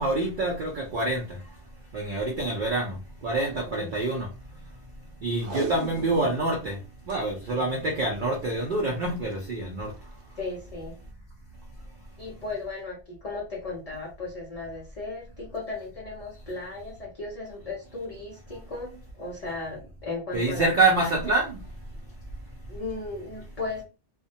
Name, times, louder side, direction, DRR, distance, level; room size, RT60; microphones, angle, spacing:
voice 1, 0.0-1.4 1.9-3.0 3.2-4.3 5.2-6.8 7.1-9.9 20.3-21.6, right 2 dB, 55° right, 0.6 m, -26 dB
Packing tape duct tape, 5.3-6.5 6.8-6.9 7.1-7.2 7.8-8.1 9.1-9.3 9.9-10.0, right 3 dB, 70° right, 1.0 m, -36 dB
voice 2, 7.4-7.8 10.4-11.0 12.2-20.7 21.0-21.1 22.7-23.8, left 3 dB, 45° left, 0.5 m, -36 dB
2.3 x 2.1 x 2.7 m
omnidirectional pair, 1.3 m